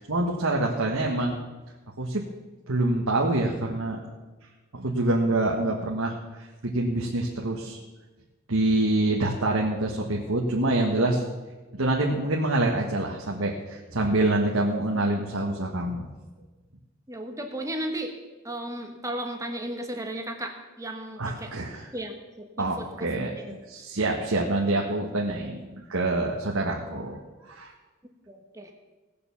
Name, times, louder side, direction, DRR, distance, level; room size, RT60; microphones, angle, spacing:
voice 1, 0.0-1.4 2.0-2.2 2.7-4.0 4.7-6.5 6.7-7.8 8.5-11.2 11.7-16.1 21.2-21.9 22.6-27.7, right 2 dB, 70° right, -1 dB, 1.5 m, -26 dB
voice 2, 17.1-18.1 18.4-21.5 21.9-23.1 23.3-23.5 28.3-28.7, right 1 dB, 15° right, 4 dB, 1.2 m, -35 dB
17.5 x 6.9 x 7.1 m, 1.2 s
head